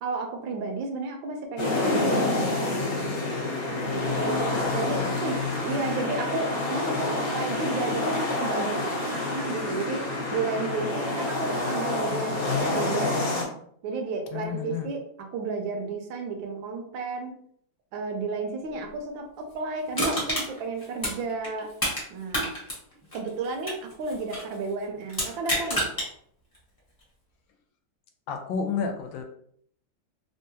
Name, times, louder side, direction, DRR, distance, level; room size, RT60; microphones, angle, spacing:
voice 1, 0.0-2.8 3.9-13.3 13.8-17.3 17.9-21.7 22.1-22.5 23.1-25.9, right 3 dB, 80° right, 3 dB, 1.4 m, -32 dB
sound 1, 1.6-13.4, left 2 dB, 55° left, 1.2 m, -28 dB
voice 2, 4.0-5.1 14.3-14.9 28.3-29.2, left 6 dB, 80° left, 4 dB, 1.3 m, -32 dB
Crushing, 19.9-22.0 22.3-24.5 25.1-26.1 26.5-26.6, equal, 15° left, 0.7 m, -29 dB
3.6 x 2.2 x 2.7 m, 0.65 s
omnidirectional pair, 2.1 m